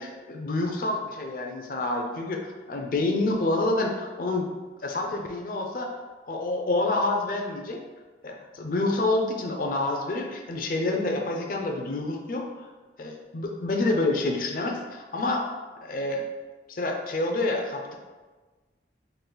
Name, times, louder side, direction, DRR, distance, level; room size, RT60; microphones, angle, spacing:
voice 1, 0.0-4.5 4.8-6.0 6.3-7.8 8.2-12.7 13.0-15.5 15.8-16.2 16.7-18.0, left 2 dB, 50° left, 2 dB, 0.5 m, -28 dB
3.9 x 2.5 x 3.8 m, 1.3 s
head